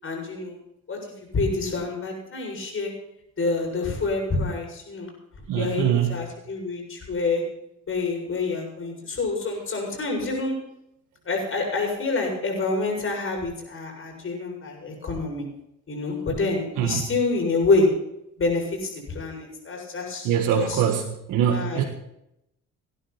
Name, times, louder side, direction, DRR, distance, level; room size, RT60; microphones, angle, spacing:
voice 1, 0.0-0.6 0.9-1.0 1.3-2.9 3.4-5.1 5.5-7.4 7.9-10.6 11.3-15.5 15.9-17.9 18.4-20.8 21.5-21.8, left 3 dB, 45° left, 1 dB, 7.3 m, -27 dB
voice 2, 5.5-6.1 16.8-17.0 20.2-21.8, right 9 dB, 90° right, 2 dB, 1.6 m, -23 dB
18.5 x 11.0 x 4.4 m, 0.81 s
cardioid pair, 90°, 30 cm